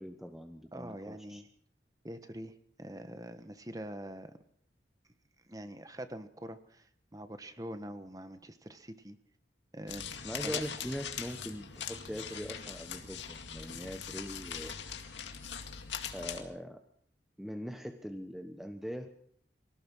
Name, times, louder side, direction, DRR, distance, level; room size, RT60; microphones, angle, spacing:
voice 1, 0.0-1.4 10.2-14.7 16.1-16.8 17.4-19.1, equal, ahead, 6 dB, 1.0 m, -41 dB
voice 2, 0.7-1.5 2.0-2.5 2.8-4.4 5.5-9.2 9.7-10.1 10.4-10.6, right 1 dB, 20° right, 10 dB, 1.3 m, -44 dB
sound 1, 9.9-16.4, left 7 dB, 90° left, 2.2 m, -41 dB
24.0 x 17.5 x 6.3 m, 0.63 s
head